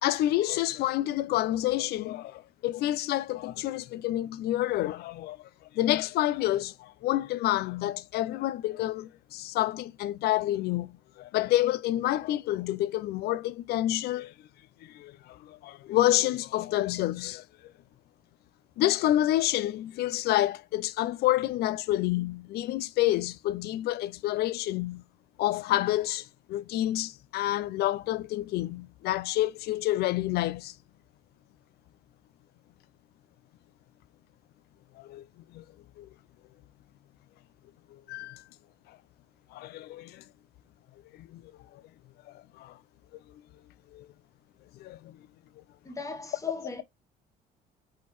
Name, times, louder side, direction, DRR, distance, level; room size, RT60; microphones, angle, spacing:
voice 1, 0.0-5.5 5.7-14.3 14.8-17.5 18.8-25.0 25.4-30.7 35.0-35.2 35.5-35.6 36.0-36.1 37.9-38.4 39.5-40.2 41.1-41.4 41.7-41.8 42.6-42.8 43.9-44.1 44.8-45.2, left 14 dB, 70° left, 0.4 m, -28 dB
voice 2, 45.8-46.8, left 3 dB, 20° left, 1.1 m, -38 dB
4.2 x 3.6 x 3.2 m
cardioid pair, 110°, 17 cm